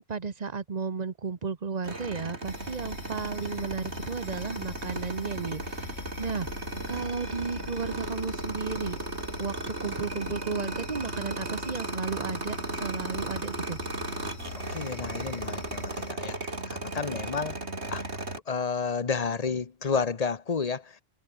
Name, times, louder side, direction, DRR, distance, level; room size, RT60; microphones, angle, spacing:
voice 1, 0.0-6.5 6.9-9.0 9.4-13.8, right 5 dB, 35° right, 1.2 m, -34 dB
sound 1, 1.8-18.4, right 2 dB, 65° right, 4.7 m, -36 dB
sound 2, 2.4-16.1, left 5 dB, 85° left, 2.3 m, -43 dB
voice 2, 14.7-17.5 17.9-18.0 18.5-21.0, left 5 dB, 35° left, 1.1 m, -31 dB
omnidirectional pair, 1.2 m